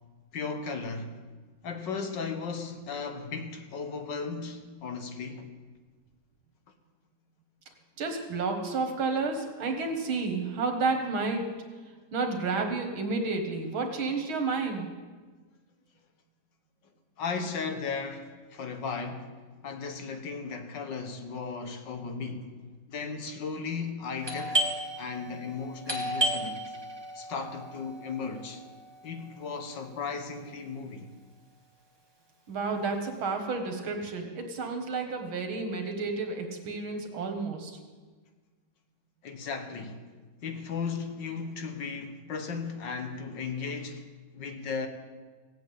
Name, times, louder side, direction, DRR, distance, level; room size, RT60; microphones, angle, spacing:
voice 1, 0.3-1.2 1.6-5.5 17.2-19.3 19.6-22.5 22.9-24.6 25.0-26.7 27.2-28.6 29.0-31.1 39.2-40.1 40.4-44.1 44.3-44.9, left 5 dB, 65° left, 1.9 m, -36 dB
voice 2, 8.0-11.5 12.1-14.9 32.5-37.8, right 4 dB, 85° right, 2.4 m, -31 dB
Doorbell, 24.2-29.7, right 1 dB, 15° right, 1.4 m, -33 dB
16.5 x 8.3 x 8.5 m
omnidirectional pair, 2.2 m